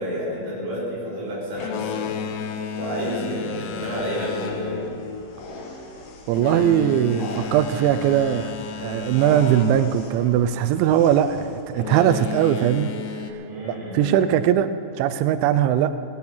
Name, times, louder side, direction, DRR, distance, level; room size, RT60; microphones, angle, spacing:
voice 1, 0.0-2.1 2.8-4.9 13.4-14.2, equal, 45° right, -6 dB, 5.5 m, -30 dB
Boat Water vehicle, 1.5-10.9 11.7-13.3, left 6 dB, 90° left, 2.4 m, -33 dB
sound 1, 3.7-11.6, left 2 dB, 65° left, 3.6 m, -40 dB
voice 2, 6.3-13.0 13.7-15.9, right 10 dB, 85° right, 10 dB, 2.7 m, -20 dB
18.0 x 9.2 x 5.6 m, 2.5 s
omnidirectional pair, 5.7 m